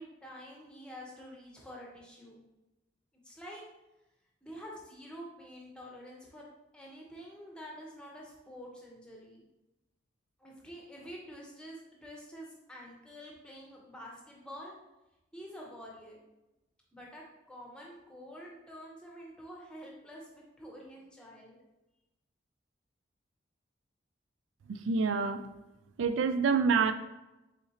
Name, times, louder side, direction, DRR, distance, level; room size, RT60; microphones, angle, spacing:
voice 1, 0.0-2.5 3.2-3.6 4.4-6.5 6.7-9.4 10.4-14.7 15.3-16.2 16.9-21.6, equal, 5° left, -3 dB, 0.8 m, -48 dB
voice 2, 24.8-25.4 26.0-26.9, right 5 dB, 80° right, 10 dB, 0.3 m, -26 dB
4.3 x 3.8 x 2.8 m, 0.99 s
head